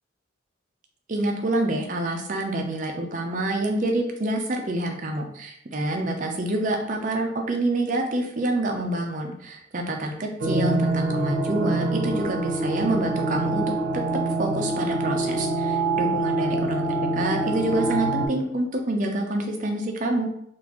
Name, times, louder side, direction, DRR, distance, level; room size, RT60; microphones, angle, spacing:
voice 1, 1.1-14.0 14.4-16.9 17.1-20.3, right 1 dB, 40° right, 2 dB, 0.5 m, -27 dB
sound 1, 10.4-18.3, right 2 dB, 75° right, 0.7 m, -25 dB
3.6 x 2.4 x 2.9 m, 0.73 s
head